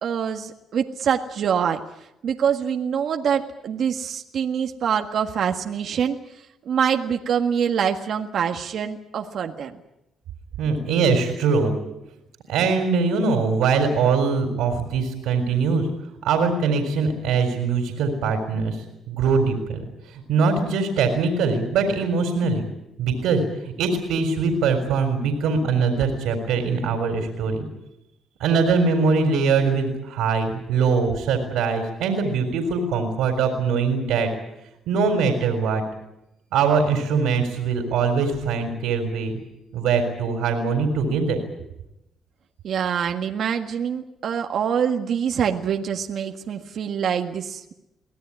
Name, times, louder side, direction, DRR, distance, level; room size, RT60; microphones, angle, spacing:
voice 1, 0.0-1.8 2.2-6.2 6.6-9.7 42.6-47.7, right 7 dB, 65° right, 4 dB, 1.7 m, -25 dB
voice 2, 10.6-11.7 12.5-15.9 16.2-22.6 23.0-27.7 28.4-34.3 34.9-35.8 36.5-39.3 39.7-41.4, right 5 dB, 90° right, 4 dB, 3.9 m, -22 dB
23.5 x 17.5 x 9.9 m, 0.88 s
cardioid pair, 90°, 0 cm